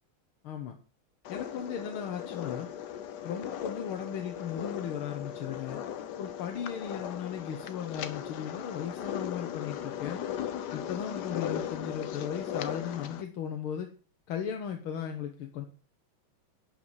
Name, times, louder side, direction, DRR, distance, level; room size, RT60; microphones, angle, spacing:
voice 1, 0.4-0.8 1.3-2.7 3.2-5.8 6.2-10.2 10.7-13.9 14.3-15.7, left 8 dB, 90° left, 4 dB, 1.9 m, -36 dB
sound 1, 1.2-13.2, left 10 dB, 65° left, 1.2 m, -38 dB
11.5 x 5.6 x 7.4 m, 0.40 s
omnidirectional pair, 2.2 m